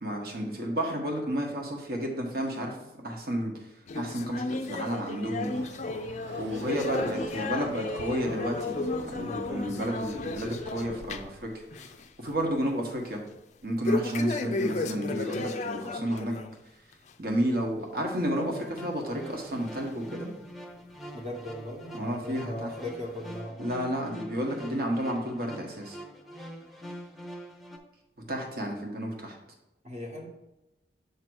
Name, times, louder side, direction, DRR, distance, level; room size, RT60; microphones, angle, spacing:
voice 1, 0.0-2.8 3.0-3.7 3.9-5.5 6.4-11.6 12.2-13.2 13.6-16.4 17.2-20.3 21.9-22.7 23.6-26.0 28.3-29.4, equal, 60° right, 1 dB, 1.3 m, -31 dB
sound 1, 3.9-11.4 11.7-12.1 12.4-12.5 13.8-16.5 16.9-17.1 17.8-17.9 18.8-18.9 19.7-19.8, left 3 dB, 40° left, 0.4 m, -34 dB
Chatter / Car passing by / Motorcycle, 5.5-11.4, right 3 dB, 85° right, 0.5 m, -45 dB
sound 2, 18.5-27.8, equal, ahead, 0.7 m, -45 dB
voice 2, 21.1-23.7 29.8-30.3, left 1 dB, 35° right, -1 dB, 1.2 m, -38 dB
8.1 x 2.9 x 6.2 m, 0.93 s
head